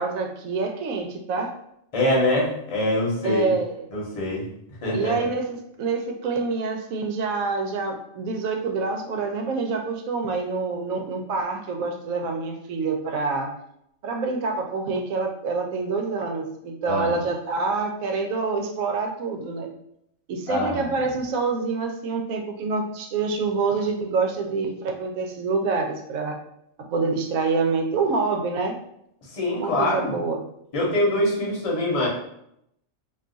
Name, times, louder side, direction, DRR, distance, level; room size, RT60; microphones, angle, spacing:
voice 1, 0.0-1.5 3.2-3.8 4.9-13.5 14.0-19.7 20.3-26.4 26.9-28.8 29.6-30.4, right 4 dB, 85° right, 3 dB, 1.0 m, -26 dB
voice 2, 1.9-3.5 3.9-4.5 4.8-5.3 16.8-17.2 20.5-20.9 29.3-30.1 30.7-32.1, left 1 dB, 30° left, -4 dB, 0.8 m, -24 dB
2.6 x 2.3 x 3.8 m, 0.76 s
omnidirectional pair, 1.4 m